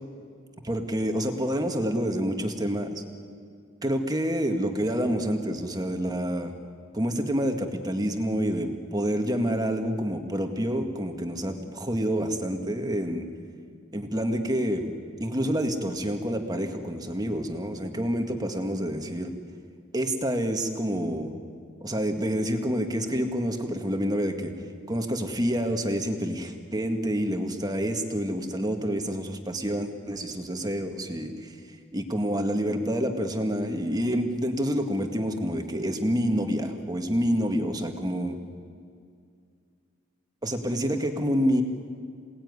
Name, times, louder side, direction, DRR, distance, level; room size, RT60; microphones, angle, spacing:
voice 1, 0.6-3.0 3.8-6.5 6.9-13.3 13.9-14.9 15.2-19.3 19.9-21.3 21.8-24.5 24.9-31.6 31.9-38.4 40.4-41.6, equal, 20° right, 5 dB, 2.0 m, -28 dB
27.0 x 19.0 x 9.8 m, 2.2 s
head